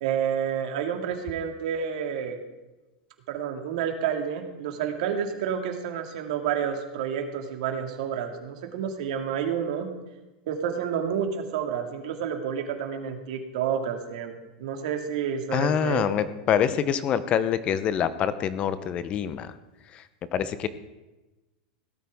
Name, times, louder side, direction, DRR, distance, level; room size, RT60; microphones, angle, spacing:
voice 1, 0.0-2.4 3.3-9.9 10.5-16.1, right 8 dB, 65° right, 4 dB, 2.1 m, -29 dB
voice 2, 15.5-19.5 19.9-20.0 20.3-20.7, left 8 dB, 25° left, 14 dB, 0.7 m, -25 dB
17.0 x 13.0 x 3.6 m, 1.1 s
supercardioid pair, 160°, 4 cm